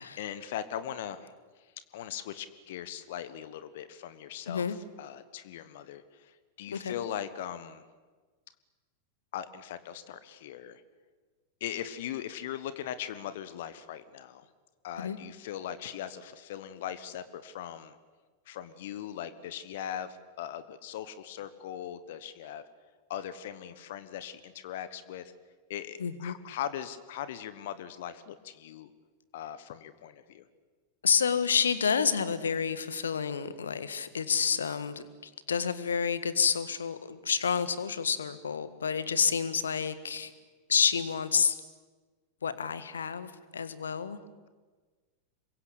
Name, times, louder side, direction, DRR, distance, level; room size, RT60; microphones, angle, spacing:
voice 1, 0.2-1.7 1.9-7.8 9.3-10.8 11.6-14.4 14.8-17.9 18.5-22.6 23.1-25.3 25.7-28.9 29.3-30.4, left 10 dB, 55° left, 13 dB, 1.3 m, -40 dB
voice 2, 26.0-26.4 31.0-40.3 40.7-41.6 42.4-44.2, left 6 dB, 70° left, 13 dB, 1.7 m, -29 dB
27.0 x 23.0 x 8.4 m, 1.4 s
figure-of-eight pair, 90°, 0 cm